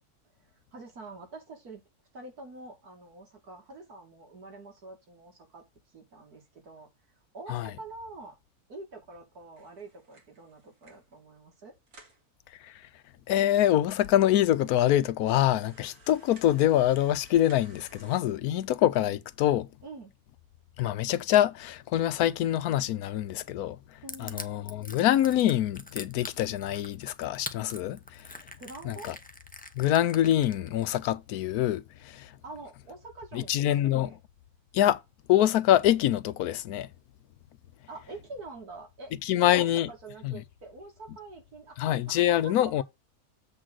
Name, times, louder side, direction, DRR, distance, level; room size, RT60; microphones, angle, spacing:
voice 1, 0.7-1.8 2.1-5.6 5.9-6.9 7.3-8.4 8.7-11.7 19.8-20.1 24.0-24.5 28.6-29.2 32.4-34.2 37.9-42.8, right 2 dB, 90° right, 2.9 m, -46 dB
sound 1, 9.6-11.2 11.5-11.6 11.9-12.2 12.9-13.0 13.3-13.4 14.0-14.1 14.6-14.7 15.5-18.2, right 3 dB, 60° right, 2.4 m, -57 dB
voice 2, 13.3-19.7 20.8-23.8 24.2-28.3 28.8-29.1 29.7-32.4 33.3-34.1 34.7-35.0 35.3-36.9 39.2-39.9 40.2-40.4 41.8-42.8, left 12 dB, 85° left, 1.1 m, -25 dB
Crushing, 24.1-30.8, left 1 dB, 10° left, 0.5 m, -42 dB
7.6 x 3.8 x 6.1 m
omnidirectional pair, 1.6 m